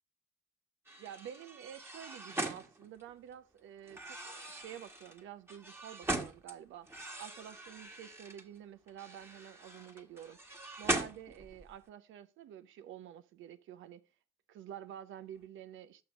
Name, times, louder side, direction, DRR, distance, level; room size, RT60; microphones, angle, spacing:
sound 1, 0.9-3.3 3.9-6.5 6.9-8.4 8.9-11.7, right 2 dB, 10° right, 1.4 m, -40 dB
voice 1, 1.0-6.9 7.2-10.4 10.8-14.0 14.5-16.0, right 10 dB, 75° right, 0.6 m, -49 dB
6.1 x 5.7 x 5.0 m
supercardioid pair, 55°, 20 cm